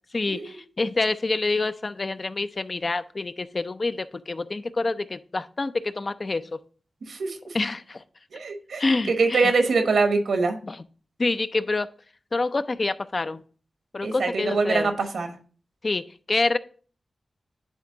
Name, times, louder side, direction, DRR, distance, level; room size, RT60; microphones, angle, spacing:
voice 1, 0.1-6.6 7.5-8.0 8.8-9.5 10.6-10.8 11.2-11.9 12.3-13.4 13.9-14.9 15.8-16.6, left 3 dB, 40° left, 13 dB, 0.4 m, -27 dB
voice 2, 7.0-7.4 8.3-10.6 14.0-15.3, right 4 dB, 85° right, 6 dB, 1.1 m, -24 dB
10.0 x 3.4 x 3.8 m, 0.42 s
wide cardioid pair, 110°, 0 cm